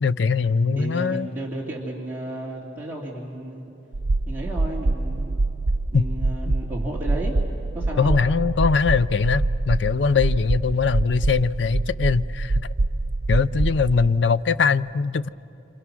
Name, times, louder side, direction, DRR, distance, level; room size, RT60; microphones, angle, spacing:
voice 1, 0.0-1.3 5.9-6.0 8.0-12.7 13.3-15.3, left 5 dB, 65° left, 16 dB, 0.5 m, -21 dB
voice 2, 0.7-3.7 4.3-5.4 5.9-7.3 7.7-8.2, right 1 dB, 10° right, -4 dB, 2.6 m, -33 dB
sound 1, 3.9-14.1, right 2 dB, 65° right, 0.6 m, -25 dB
28.0 x 27.0 x 6.2 m, 2.8 s
head